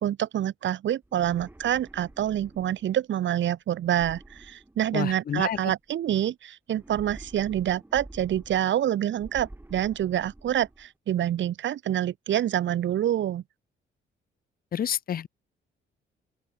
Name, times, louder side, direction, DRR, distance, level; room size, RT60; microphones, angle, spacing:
voice 1, 0.0-13.4, right 11 dB, 70° right, 2.6 m, -27 dB
sound 1, 1.0-3.0 3.8-5.3 6.7-8.9 9.2-10.9, right 1 dB, 10° right, 4.1 m, -47 dB
voice 2, 4.9-5.7 14.7-15.3, left 9 dB, 50° left, 0.9 m, -29 dB
open air
cardioid pair, 90°, 20 cm